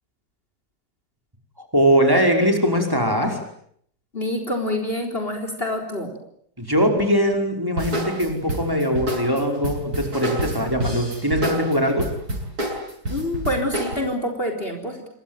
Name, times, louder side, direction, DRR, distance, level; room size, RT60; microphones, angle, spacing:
voice 1, 1.7-3.4 6.6-12.1, equal, 15° right, 3 dB, 5.3 m, -21 dB
voice 2, 4.1-6.1 13.1-15.1, left 1 dB, 35° left, 5 dB, 4.2 m, -26 dB
sound 1, 7.8-13.9, right 1 dB, 65° right, 7.5 m, -28 dB
27.0 x 23.5 x 9.2 m, 0.68 s
omnidirectional pair, 1.7 m